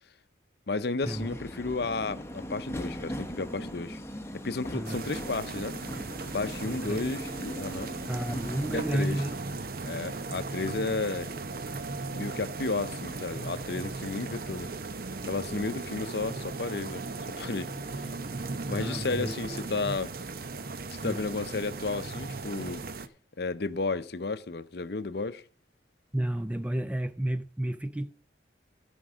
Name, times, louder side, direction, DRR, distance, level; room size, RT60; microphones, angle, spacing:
voice 1, 0.7-4.0 4.4-5.8 6.3-7.9 8.7-9.2 9.8-11.3 12.1-14.7 15.2-17.0 17.4-18.1 18.7-20.1 20.9-22.8 23.4-25.4, left 3 dB, 55° left, 0.6 m, -33 dB
Subway metro underground, 1.0-8.9, equal, 15° left, 0.9 m, -39 dB
sound 1, 4.8-23.1, right 3 dB, 50° right, 0.7 m, -37 dB
voice 2, 6.7-7.0 8.1-9.4 18.7-20.0 21.0-21.2 26.1-28.1, right 1 dB, 5° right, 0.4 m, -32 dB
13.5 x 5.3 x 6.2 m
head